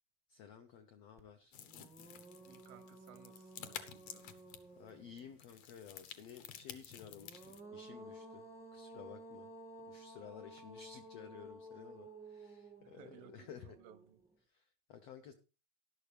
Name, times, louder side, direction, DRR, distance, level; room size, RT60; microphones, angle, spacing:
voice 1, 0.3-1.6 4.7-8.4 8.7-9.5 9.9-13.8 14.5-15.3, left 7 dB, 80° left, 1.4 m, -54 dB
sound 1, 1.2-1.3 1.7-5.3 7.0-14.3, right 1 dB, ahead, 0.6 m, -54 dB
sound 2, 1.5-7.6, left 10 dB, 65° left, 1.8 m, -52 dB
voice 2, 2.5-4.3 13.0-14.2, right 10 dB, 85° right, 2.7 m, -60 dB
13.5 x 11.5 x 3.4 m
omnidirectional pair, 4.1 m